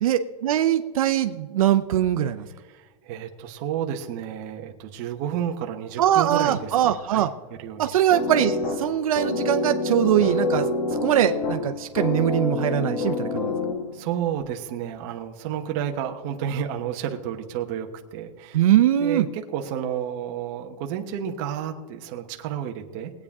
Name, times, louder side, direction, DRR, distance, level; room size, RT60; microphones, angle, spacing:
voice 1, 0.0-2.4 6.0-7.3 7.8-10.7 11.0-13.5 18.5-19.3, right 11 dB, 65° right, 8 dB, 0.7 m, -22 dB
voice 2, 2.6-8.0 13.9-18.7 19.0-23.1, right 9 dB, 30° right, 4 dB, 1.0 m, -31 dB
sound 1, 8.1-14.1, left 3 dB, 45° left, 1.9 m, -27 dB
20.5 x 8.6 x 3.6 m, 1.3 s
supercardioid pair, 175°, 20 cm